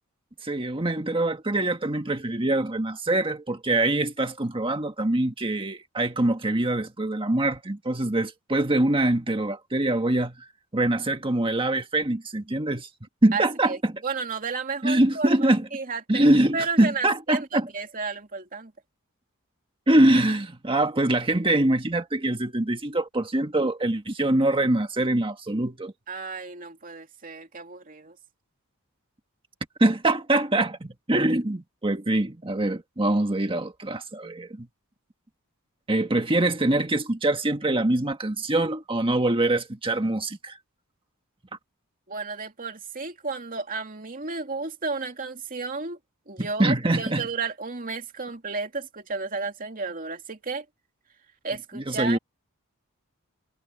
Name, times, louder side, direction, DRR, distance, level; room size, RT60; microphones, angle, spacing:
voice 1, 0.4-10.4 10.7-12.9 13.2-13.9 14.8-15.7 16.1-17.7 19.9-25.9 29.8-34.7 35.9-40.6 46.4-47.2 51.7-52.2, right 1 dB, 25° right, 1.6 m, -24 dB
voice 2, 13.3-16.3 16.5-18.7 26.1-28.2 42.1-46.0 46.3-50.6 51.4-52.2, right 4 dB, 40° right, 2.5 m, -33 dB
head